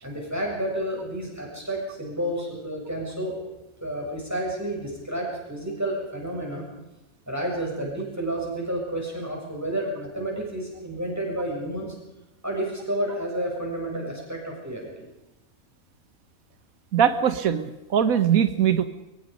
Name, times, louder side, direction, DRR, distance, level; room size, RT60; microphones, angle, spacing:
voice 1, 0.0-3.4 3.8-6.7 7.3-12.0 12.4-15.0, right 1 dB, 10° right, -1 dB, 7.1 m, -30 dB
voice 2, 16.9-18.8, right 8 dB, 85° right, 10 dB, 1.5 m, -21 dB
23.5 x 23.0 x 5.3 m, 0.97 s
omnidirectional pair, 1.5 m